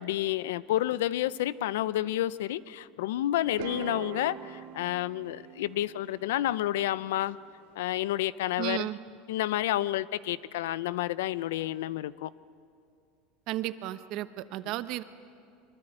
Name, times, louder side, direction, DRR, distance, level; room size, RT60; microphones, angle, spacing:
voice 1, 0.0-7.4 7.8-8.9 9.3-12.3, left 14 dB, 90° left, 18 dB, 0.6 m, -30 dB
sound 1, 3.5-7.6, right 9 dB, 80° right, 2.0 m, -43 dB
voice 2, 8.6-9.0 13.5-15.0, right 15 dB, 55° right, 12 dB, 1.0 m, -33 dB
24.5 x 24.0 x 8.9 m, 2.4 s
supercardioid pair, 145°, 0 cm